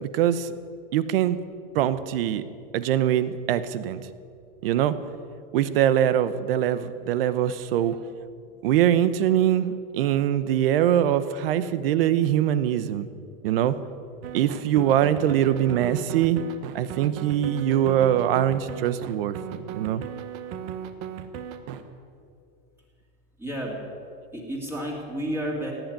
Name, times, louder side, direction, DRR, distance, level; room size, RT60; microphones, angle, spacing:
voice 1, 0.0-0.5 0.9-1.4 1.7-2.4 2.7-4.0 4.6-4.9 5.5-8.0 8.6-13.1 13.4-13.7 14.3-16.4 16.7-20.0, right 11 dB, 70° right, 14 dB, 1.0 m, -23 dB
sound 1, 14.2-21.8, right 8 dB, 40° right, 1.1 m, -36 dB
voice 2, 23.4-23.8 24.3-25.7, equal, 10° right, -2 dB, 2.4 m, -31 dB
17.0 x 9.0 x 9.2 m, 2.3 s
supercardioid pair, 160°, 30 cm